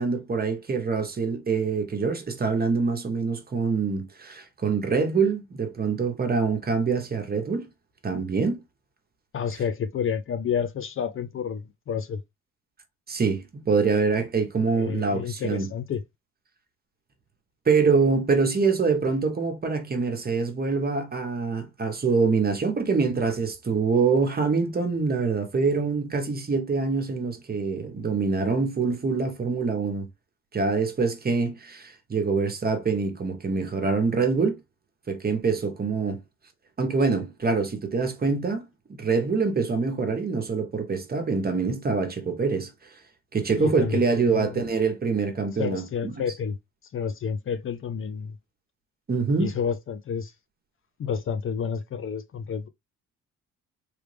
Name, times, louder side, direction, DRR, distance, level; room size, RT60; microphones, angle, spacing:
voice 1, 0.0-7.6 8.0-8.6 13.1-15.7 17.7-30.1 30.5-34.6 35.1-36.2 36.8-38.6 38.9-42.7 43.3-46.3 49.1-49.5, right 4 dB, 30° right, 1.1 m, -25 dB
voice 2, 9.3-12.2 14.7-16.0 43.6-44.6 45.6-46.5 46.9-48.3 49.4-50.3 51.0-52.7, left 7 dB, 45° left, 0.5 m, -30 dB
3.3 x 2.4 x 3.3 m
cardioid pair, 90°, 30 cm